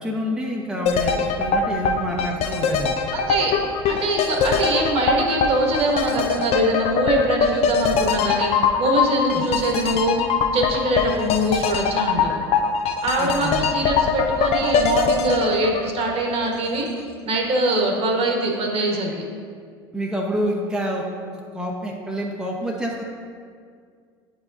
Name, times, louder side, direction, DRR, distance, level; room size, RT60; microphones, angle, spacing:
voice 1, 0.0-3.0 9.3-9.4 13.2-13.7 19.9-21.0 21.5-23.0, equal, 5° right, -2 dB, 0.8 m, -27 dB
sound 1, 0.9-16.8 17.1-17.2, left 5 dB, 50° left, 0.6 m, -22 dB
voice 2, 3.1-3.5 3.9-10.2 10.5-12.4 13.0-16.9 17.2-19.2, right 1 dB, 45° right, 1 dB, 1.3 m, -23 dB
9.3 x 4.9 x 2.6 m, 2.1 s
hypercardioid pair, 75°, 14 cm